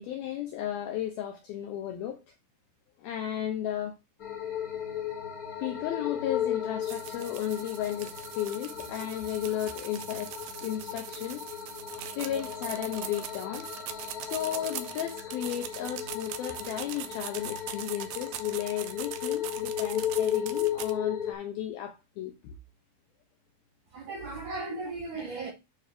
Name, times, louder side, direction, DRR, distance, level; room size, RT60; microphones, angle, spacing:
voice 1, 0.0-2.2 3.0-3.9 5.6-10.3 10.6-11.4 12.1-13.7 14.2-22.5, left 11 dB, 85° left, 2.2 m, -34 dB
sound 1, 4.2-21.3, left 10 dB, 55° left, 1.0 m, -35 dB
sound 2, 6.8-20.9, right 12 dB, 80° right, 2.8 m, -41 dB
voice 2, 23.9-25.5, right 3 dB, 65° right, 2.0 m, -36 dB
8.9 x 3.4 x 6.5 m
omnidirectional pair, 5.5 m